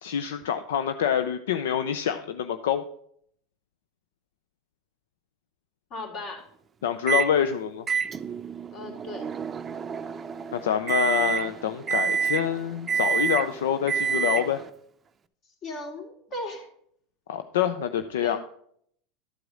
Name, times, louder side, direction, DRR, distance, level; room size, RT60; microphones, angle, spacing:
voice 1, 0.0-2.8 6.8-7.9 10.5-14.6 17.3-18.4, left 9 dB, 80° left, 9 dB, 0.5 m, -26 dB
voice 2, 5.9-6.4 8.7-9.3 15.6-16.7 18.2-18.4, left 2 dB, 50° left, 2 dB, 3.2 m, -37 dB
Microwave oven, 7.1-7.3 7.9-14.7, right 6 dB, 25° right, 0.5 m, -28 dB
12.0 x 4.8 x 6.3 m, 0.66 s
hypercardioid pair, 100°, 0 cm